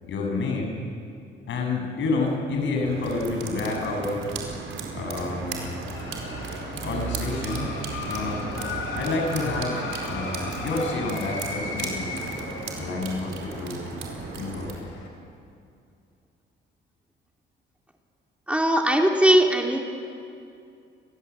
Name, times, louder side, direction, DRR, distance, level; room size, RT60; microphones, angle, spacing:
voice 1, 0.0-0.7 1.5-4.3 4.9-5.7 6.6-7.8 8.1-8.5 9.0-12.2 12.8-13.8 14.4-14.8, left 3 dB, 70° left, 2 dB, 7.5 m, -29 dB
sound 1, 2.8-14.7, right 5 dB, 80° right, 4.8 m, -35 dB
sound 2, 5.1-15.1, left 4 dB, 90° left, 5.2 m, -37 dB
voice 2, 18.5-19.8, right 1 dB, 5° right, 1 dB, 3.3 m, -19 dB
29.5 x 22.0 x 8.5 m, 2.4 s
cardioid pair, 90°, 20 cm